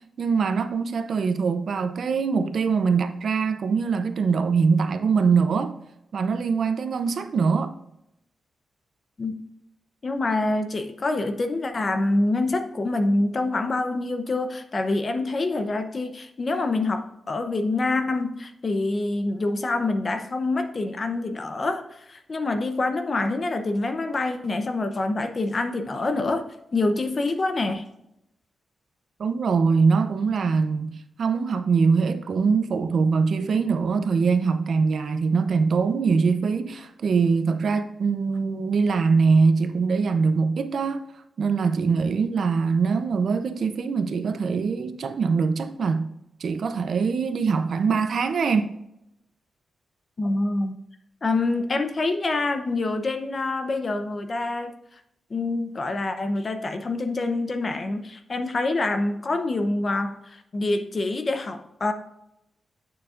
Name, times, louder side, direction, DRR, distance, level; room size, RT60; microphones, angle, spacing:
voice 1, 0.2-5.7 6.1-7.7 29.2-41.0 41.4-46.1 46.4-48.7, right 5 dB, 60° right, 0.6 m, -23 dB
voice 2, 10.0-26.4 26.7-27.8 50.2-50.8 51.2-54.7 55.3-61.9, left 2 dB, 35° left, 0.7 m, -26 dB
8.5 x 6.9 x 2.5 m
wide cardioid pair, 160°, 0 cm